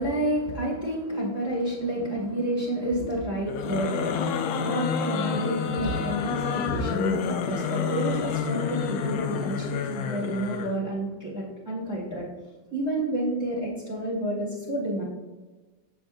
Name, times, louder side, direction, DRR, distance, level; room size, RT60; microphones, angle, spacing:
voice 1, 0.0-12.3 12.7-15.0, right 1 dB, 10° right, -6 dB, 1.6 m, -30 dB
sound 1, 3.5-10.8, left 6 dB, 85° left, 0.8 m, -29 dB
7.4 x 6.3 x 2.6 m, 1.2 s
omnidirectional pair, 2.2 m